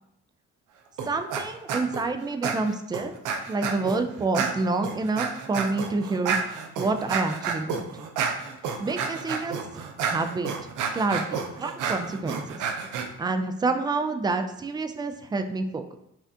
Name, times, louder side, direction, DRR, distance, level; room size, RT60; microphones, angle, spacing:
voice 1, 1.0-3.1 3.5-6.4 6.8-7.9 8.8-10.5 10.9-12.7 13.2-16.0, right 3 dB, 15° right, 8 dB, 0.3 m, -28 dB
sound 1, 1.0-1.4 1.7-2.0 2.4-4.0 4.3-13.1, right 6 dB, 85° right, 0.6 m, -30 dB
5.7 x 2.4 x 2.7 m, 0.78 s
cardioid pair, 90°, 30 cm